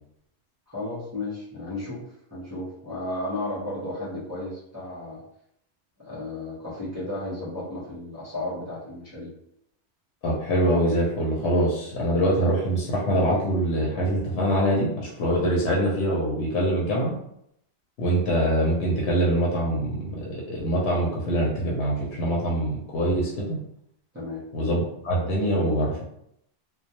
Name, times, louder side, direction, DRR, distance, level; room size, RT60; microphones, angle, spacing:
voice 1, 0.7-2.0 2.3-5.2 6.0-9.3 24.1-24.4, left 2 dB, 20° right, -10 dB, 0.6 m, -33 dB
voice 2, 10.2-17.1 18.0-23.6 24.5-26.0, right 1 dB, 80° left, -3 dB, 0.9 m, -24 dB
2.2 x 2.1 x 2.8 m, 0.76 s
omnidirectional pair, 1.1 m